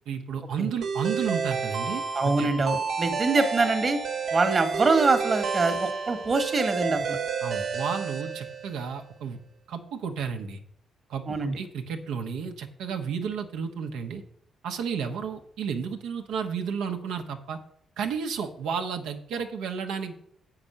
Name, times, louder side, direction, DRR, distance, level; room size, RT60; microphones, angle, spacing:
voice 1, 0.1-2.5 7.4-9.4 9.7-10.6 11.1-14.2 14.6-17.6 18.0-20.1, right 6 dB, 85° right, 4 dB, 1.0 m, -32 dB
sound 1, 0.8-8.9, right 5 dB, 65° right, 1.3 m, -30 dB
voice 2, 2.1-4.0 4.3-7.2 11.3-11.5, right 3 dB, 40° right, 9 dB, 1.3 m, -24 dB
7.4 x 5.9 x 6.6 m, 0.67 s
cardioid pair, 90°, 0 cm